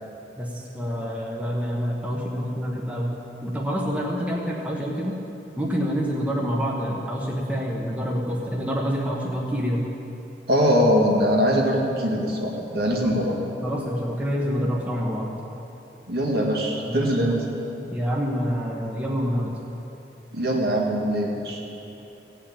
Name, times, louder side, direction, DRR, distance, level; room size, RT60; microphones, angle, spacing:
voice 1, 0.4-3.1 3.4-5.1 5.6-9.8 13.0-13.1 13.6-15.3 16.9-17.3 17.8-19.5, equal, 10° right, -3 dB, 1.1 m, -27 dB
voice 2, 10.5-13.4 16.1-17.4 20.3-21.6, equal, 65° right, -1 dB, 2.0 m, -22 dB
17.0 x 5.7 x 8.6 m, 3.0 s
head